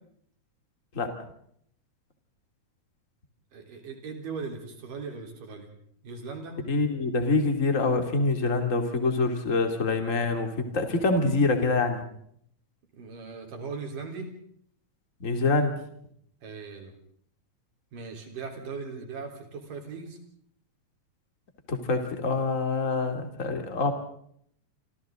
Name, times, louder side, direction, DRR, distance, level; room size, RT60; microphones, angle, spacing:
voice 1, 3.5-5.7 6.0-6.6 12.9-14.3 16.4-16.9 17.9-20.2, right 4 dB, 80° right, 3 dB, 5.4 m, -39 dB
voice 2, 6.7-12.0 15.2-15.7 21.7-23.9, left 3 dB, 25° left, 5 dB, 2.8 m, -25 dB
28.0 x 27.0 x 3.8 m, 0.67 s
omnidirectional pair, 3.7 m